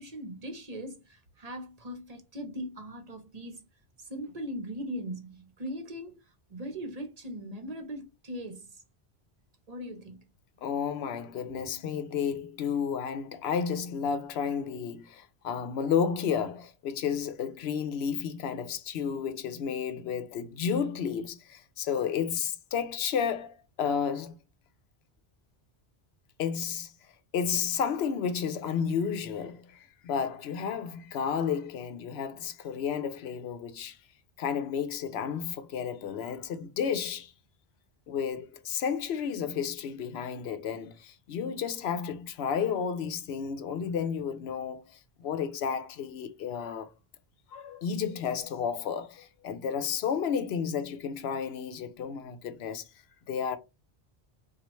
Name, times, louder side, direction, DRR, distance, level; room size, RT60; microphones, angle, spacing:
voice 1, 0.0-3.7 4.0-6.2 6.5-8.8 9.7-10.3 11.5-11.7, equal, 40° right, 0.8 m, -40 dB
voice 2, 10.6-24.4 26.4-26.9 27.3-34.0 34.4-37.3 38.1-46.9 47.5-52.8 53.3-53.6, left 7 dB, 80° left, 0.9 m, -32 dB
4.5 x 2.4 x 3.0 m
omnidirectional pair, 1.1 m